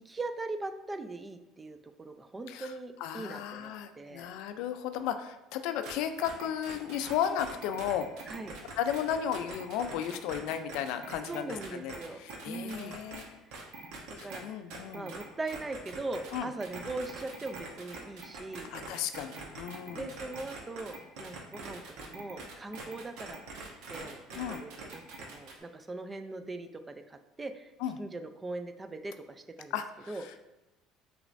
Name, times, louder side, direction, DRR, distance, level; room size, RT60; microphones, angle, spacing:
voice 1, 0.1-4.3 8.3-8.5 11.3-12.2 12.4-13.0 13.6-13.7 14.2-14.6 14.9-18.7 19.8-27.7 28.0-29.7 30.1-30.2, right 2 dB, 20° right, 8 dB, 0.4 m, -40 dB
voice 2, 3.0-8.1 8.8-13.4 14.2-15.1 16.3-16.5 18.7-20.1 24.3-24.6 27.8-28.0 29.7-30.4, left 9 dB, 75° left, 9 dB, 0.3 m, -34 dB
sound 1, 5.8-5.9 6.2-13.2 13.5-14.4 14.7-25.6, right 3 dB, 75° right, 0.9 m, -44 dB
6.0 x 3.1 x 2.6 m, 0.98 s
supercardioid pair, 100°, 0 cm